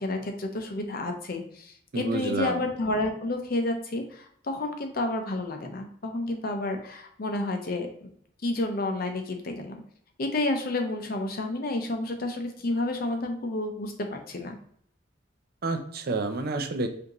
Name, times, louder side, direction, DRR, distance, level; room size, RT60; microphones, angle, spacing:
voice 1, 0.0-8.1 8.4-9.8 10.2-14.6, left 2 dB, 55° left, 5 dB, 0.7 m, -30 dB
voice 2, 1.9-2.6 15.6-16.9, right 2 dB, 55° right, 6 dB, 0.5 m, -29 dB
5.0 x 2.7 x 3.0 m, 0.65 s
head